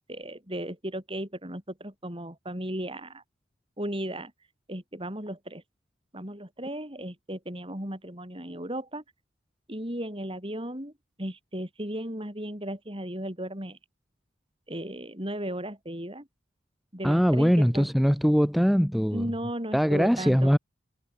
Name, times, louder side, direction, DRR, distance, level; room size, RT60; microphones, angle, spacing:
voice 1, 0.0-3.2 3.8-4.3 4.7-5.6 6.1-9.0 9.7-10.9 11.2-13.8 14.7-16.3 16.9-17.9 19.1-20.6, right 1 dB, 25° right, 5.1 m, -35 dB
voice 2, 17.0-19.3 19.7-20.6, equal, ahead, 1.8 m, -22 dB
head